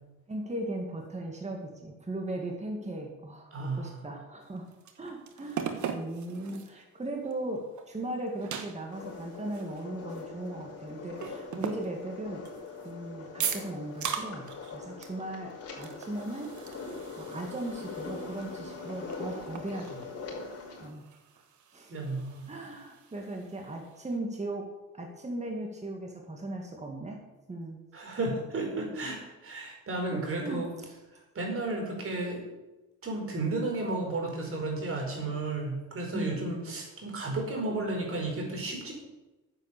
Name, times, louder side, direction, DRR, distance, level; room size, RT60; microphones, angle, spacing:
voice 1, 0.3-4.7 5.0-12.5 12.8-16.9 17.2-20.1 20.8-21.0 21.7-21.9 22.5-24.6 24.9-27.2 27.5-27.8 30.1-30.6 36.1-36.4, right 1 dB, 20° right, 1 dB, 2.3 m, -38 dB
voice 2, 3.5-3.9 21.9-22.5 27.9-30.7 31.3-32.4 33.0-38.9, right 2 dB, 45° right, 0 dB, 4.9 m, -33 dB
sound 1, 4.4-6.8 7.3-7.4 7.8-10.8 11.2-12.9 13.4-14.8 15.0-15.2 15.5-24.1, right 7 dB, 70° right, 1.5 m, -40 dB
sound 2, 8.9-20.9, left 4 dB, 50° left, 4.0 m, -42 dB
9.9 x 8.2 x 7.0 m, 1.1 s
cardioid pair, 90°, 30 cm